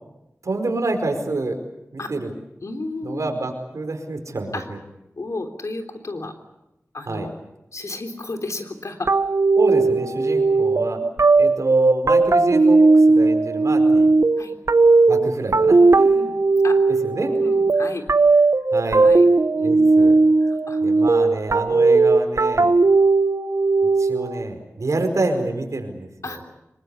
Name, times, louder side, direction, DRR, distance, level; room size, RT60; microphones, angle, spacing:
voice 1, 0.4-1.6 1.9-2.3 3.0-4.6 7.1-7.3 9.6-11.0 11.4-14.1 15.1-16.2 17.0-17.3 18.7-19.0 19.6-20.2 20.8-22.7 24.0-26.1, right 2 dB, 85° right, 5 dB, 4.8 m, -27 dB
voice 2, 2.6-3.4 4.5-4.7 5.2-6.3 6.9-7.3 7.7-9.1 11.0-11.1 14.4-14.5 15.9-16.3 16.6-16.8 17.1-18.1 18.8-19.2 19.5-19.9 20.4-20.8 21.7-21.8 26.2-26.4, left 2 dB, 80° left, 4 dB, 3.5 m, -33 dB
sound 1, 9.1-24.4, right 3 dB, 70° right, 1.0 m, -17 dB
25.0 x 22.5 x 8.4 m, 0.91 s
wide cardioid pair, 55°, 5 cm